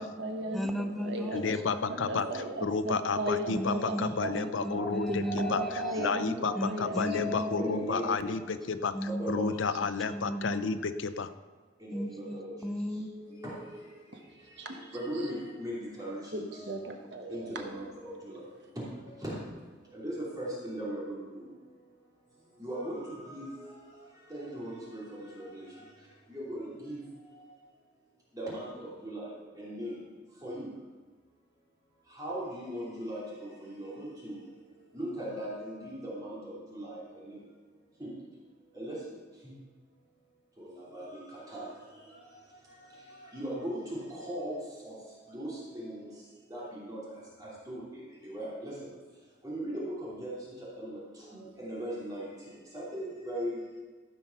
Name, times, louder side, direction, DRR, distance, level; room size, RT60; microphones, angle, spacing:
voice 1, 0.0-1.4 1.9-4.4 5.1-7.8 14.1-14.2 14.6-14.8 16.3-17.5, right 1 dB, 65° right, 1.4 m, -37 dB
voice 2, 0.5-2.0 3.5-6.1 6.5-7.7 8.0-8.1 8.4-8.5 8.9-9.6 10.1-10.8 11.9-13.1, equal, ahead, 0.5 m, -36 dB
voice 3, 1.3-8.9 9.3-11.3, left 4 dB, 85° left, 0.6 m, -32 dB
voice 4, 4.5-5.9 6.8-8.2 9.2-9.5 11.8-11.9 12.4-12.5 13.4-13.5 14.9-16.4 17.3-17.8 19.2-19.3 20.0-21.2 22.6-23.0 23.3-23.4 24.3-25.0 26.3-27.0 28.4-28.7 29.0-29.3 29.6-29.9 30.4-30.7 32.2-33.2 33.7-34.3 34.9-36.4 36.7-37.0 38.8-39.0 40.9-41.0 41.5-41.6 43.3-44.0 44.3-44.5 44.8-44.9 45.3-45.9 46.5-47.0 47.7-47.8 48.3-48.8 49.4-50.4 50.8-50.9 51.6-52.2 52.7-53.5, equal, 20° right, 2.9 m, -37 dB
14.5 x 5.8 x 5.8 m
head